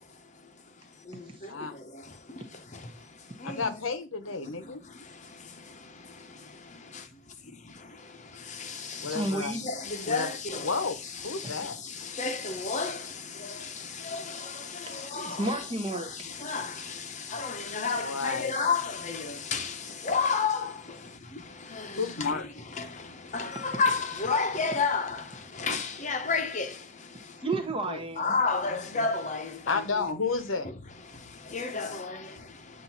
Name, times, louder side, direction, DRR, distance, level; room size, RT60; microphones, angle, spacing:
voice 1, 3.4-4.8 9.0-9.6 10.1-10.3 10.6-11.8 18.0-18.5 22.0-22.4 27.9-28.0 29.0-29.1 29.7-30.7, left 4 dB, 85° left, 1.0 m, -31 dB
voice 2, 9.1-9.7 11.4-11.6 14.9-16.1 27.4-28.3, right 2 dB, 25° right, 1.0 m, -32 dB
voice 3, 9.6-10.7 12.2-13.0 14.1-14.2 15.1-15.6 16.4-16.7 17.3-19.7 20.0-20.7 23.3-25.2 25.6-26.7 28.2-29.8 31.5-32.2, left 4 dB, 35° left, 0.8 m, -29 dB
7.8 x 2.7 x 5.7 m
head